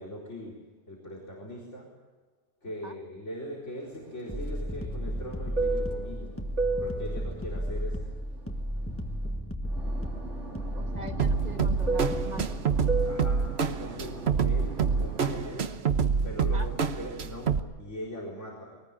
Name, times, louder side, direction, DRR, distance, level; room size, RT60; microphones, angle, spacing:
voice 1, 0.0-1.9 2.6-6.4 6.8-8.1 13.0-15.8 16.2-18.8, equal, 80° left, -2 dB, 4.7 m, -41 dB
Fixed-wing aircraft airplane, 4.0-9.3 9.7-15.5, right 3 dB, 80° right, 3.1 m, -35 dB
sound 1, 4.3-12.6, equal, 10° left, 1.5 m, -33 dB
voice 2, 10.7-12.5 16.5-16.7, right 2 dB, 35° right, 7 dB, 1.6 m, -41 dB
sound 2, 11.2-17.6, right 5 dB, 65° right, 1.3 m, -27 dB
23.0 x 19.5 x 8.8 m, 1.2 s
omnidirectional pair, 1.2 m